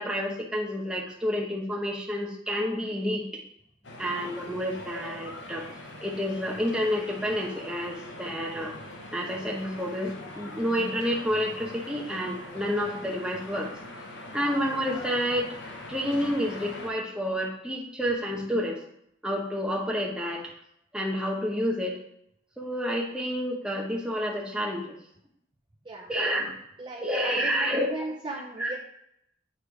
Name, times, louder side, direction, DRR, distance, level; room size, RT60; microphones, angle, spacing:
voice 1, 0.0-3.4 4.0-5.6 6.0-8.7 9.1-13.7 14.3-15.5 15.9-18.8 19.2-20.4 20.9-22.0 22.6-25.0 26.1-26.6 27.0-27.9 28.6-28.7, equal, 5° right, -2 dB, 1.0 m, -29 dB
sound 1, 3.8-16.9, left 2 dB, 70° left, 1.0 m, -42 dB
voice 2, 26.8-28.8, right 2 dB, 25° right, -1 dB, 0.7 m, -37 dB
8.7 x 3.3 x 4.8 m, 0.74 s
head